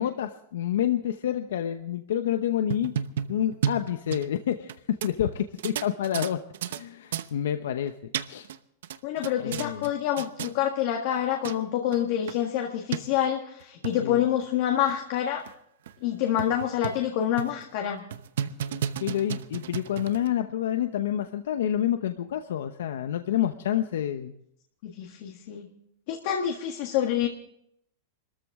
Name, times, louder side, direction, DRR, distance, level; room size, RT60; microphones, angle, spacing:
voice 1, 0.0-2.9 3.3-4.7 5.0-6.4 6.7-7.9 8.2-8.5 9.4-9.9 14.0-14.2 19.0-24.3, left 10 dB, 85° left, 8 dB, 0.9 m, -28 dB
sound 1, 2.5-4.7 5.0-5.1 5.6-6.8 7.1-7.3 7.9-8.6 8.8-9.9 10.2-10.5 11.2-11.3 11.4-11.6 11.9-12.0 12.3-12.4 12.9-13.0 13.6-13.9 14.4-14.5 14.9-15.0 15.5-15.6 15.9-16.0 16.4-17.1 17.4-17.6 18.1-20.3, right 9 dB, 70° right, 0.9 m, -32 dB
voice 2, 9.0-15.4 16.0-18.0 24.8-25.7 26.1-27.3, left 10 dB, 45° left, 2 dB, 1.6 m, -27 dB
25.0 x 13.5 x 3.6 m, 0.71 s
supercardioid pair, 170°, 0 cm